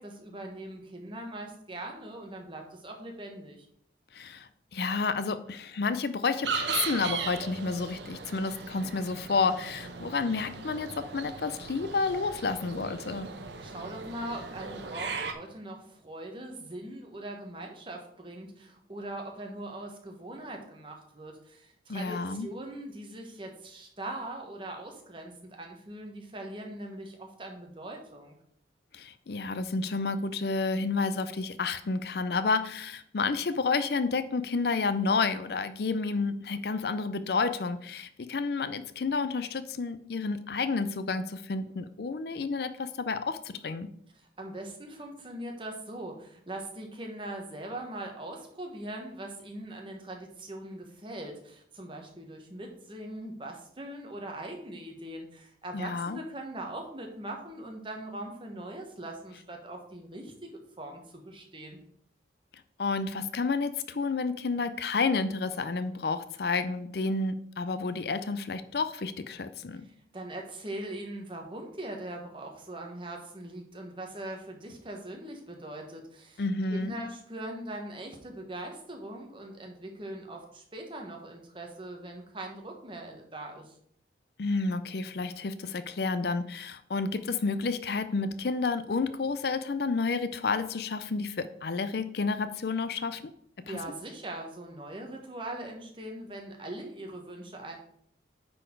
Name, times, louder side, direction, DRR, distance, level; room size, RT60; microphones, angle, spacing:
voice 1, 0.0-3.7 13.6-28.3 44.1-60.5 60.8-61.8 69.7-83.8 93.7-97.8, right 1 dB, 30° right, 2 dB, 1.3 m, -41 dB
voice 2, 4.1-13.3 21.9-22.5 28.9-43.9 55.7-56.2 62.8-69.8 76.4-76.9 84.4-93.2 93.7-93.8, left 4 dB, 55° left, 12 dB, 0.5 m, -30 dB
sound 1, 6.4-15.3, right 5 dB, 75° right, 0.9 m, -37 dB
9.3 x 4.3 x 4.5 m, 0.66 s
head